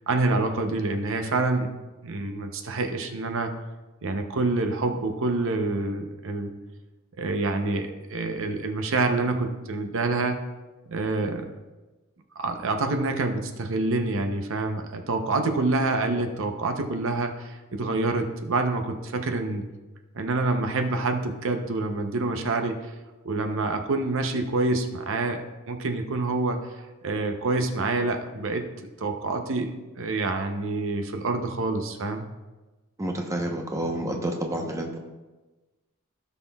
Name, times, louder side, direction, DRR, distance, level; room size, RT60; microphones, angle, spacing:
voice 1, 0.1-1.7 2.0-3.5 4.0-6.5 7.2-10.4 10.9-11.5 12.4-19.6 20.1-22.9 23.2-25.4 25.7-32.3, right 3 dB, 65° right, 5 dB, 0.7 m, -27 dB
voice 2, 33.0-35.0, right 1 dB, 15° right, 2 dB, 0.9 m, -29 dB
16.5 x 5.8 x 2.3 m, 1.2 s
head